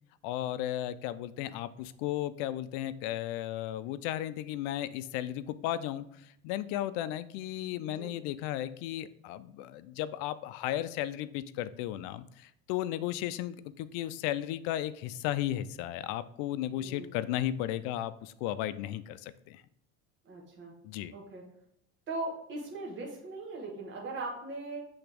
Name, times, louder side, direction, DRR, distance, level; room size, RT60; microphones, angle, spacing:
voice 1, 0.2-19.6 20.8-21.1, left 13 dB, 80° left, 15 dB, 0.5 m, -35 dB
voice 2, 16.7-17.1 20.3-20.7 21.1-21.4 22.1-24.9, right 2 dB, 35° right, -2 dB, 1.4 m, -39 dB
7.9 x 3.5 x 3.4 m, 0.75 s
cardioid pair, 140°, 32 cm